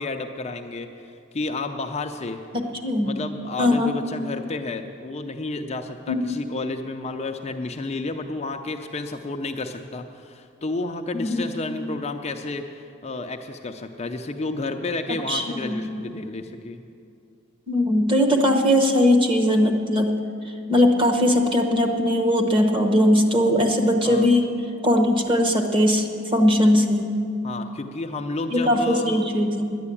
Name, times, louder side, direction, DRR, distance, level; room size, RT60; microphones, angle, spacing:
voice 1, 0.0-2.4 3.0-16.8 24.0-24.3 27.4-29.3, left 3 dB, 30° left, 4 dB, 0.5 m, -31 dB
voice 2, 2.5-3.1 3.6-3.9 6.1-6.3 11.1-11.5 15.3-15.9 17.7-20.1 20.7-24.5 24.8-26.1 26.3-27.1 28.5-29.8, left 1 dB, 25° right, 3 dB, 1.1 m, -20 dB
10.5 x 9.8 x 8.4 m, 2.5 s
head